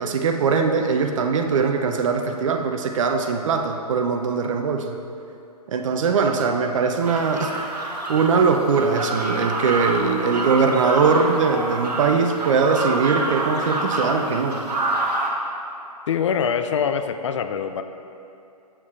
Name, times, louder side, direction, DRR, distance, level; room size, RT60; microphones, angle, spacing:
voice 1, 0.0-5.0 5.7-7.5 7.8-14.6, right 5 dB, 50° right, 4 dB, 0.6 m, -21 dB
sound 1, 7.0-15.3, right 2 dB, 75° right, 1.2 m, -27 dB
voice 2, 16.1-17.8, left 7 dB, 45° left, 9 dB, 0.4 m, -24 dB
7.2 x 7.0 x 3.3 m, 2.7 s
figure-of-eight pair, 135°, 21 cm